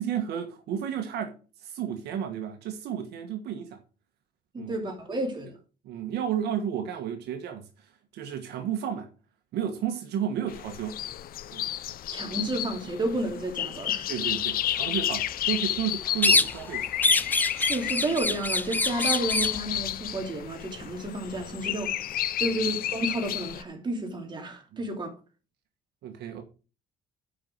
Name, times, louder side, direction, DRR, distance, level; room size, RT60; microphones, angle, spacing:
voice 1, 0.0-3.8 4.5-4.7 5.1-5.2 5.8-9.1 9.5-11.0 11.5-11.7 14.1-16.9 22.4-22.6 24.7-24.9 26.0-26.4, right 9 dB, 75° right, 1.5 m, -32 dB
voice 2, 4.5-5.5 12.1-14.1 17.5-25.1, right 2 dB, 25° right, 3.0 m, -31 dB
sound 1, 10.5-23.6, left 12 dB, 60° left, 0.7 m, -32 dB
sound 2, 16.2-16.7 17.0-19.6, left 3 dB, 10° left, 0.5 m, -24 dB
8.6 x 5.5 x 6.5 m
cardioid pair, 110°, 17 cm